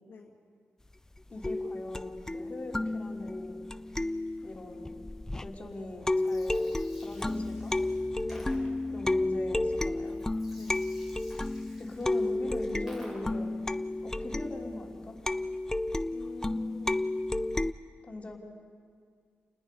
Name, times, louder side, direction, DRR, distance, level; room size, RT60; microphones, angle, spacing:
voice 1, 1.3-3.6 4.4-5.0 5.4-6.7 7.0-7.7 8.9-10.2 11.8-13.5 14.0-15.2 18.0-18.4, left 2 dB, 30° left, -1 dB, 3.2 m, -41 dB
sound 1, 1.4-5.6 6.1-17.7, left 2 dB, 15° left, 0.5 m, -32 dB
Gurgling, 6.0-13.5, equal, 10° right, 5.6 m, -54 dB
voice 2, 8.2-8.6 10.5-10.8 16.1-17.1, left 4 dB, 65° left, -1 dB, 2.2 m, -49 dB
30.0 x 20.0 x 5.4 m, 2.1 s
wide cardioid pair, 115°, 4 cm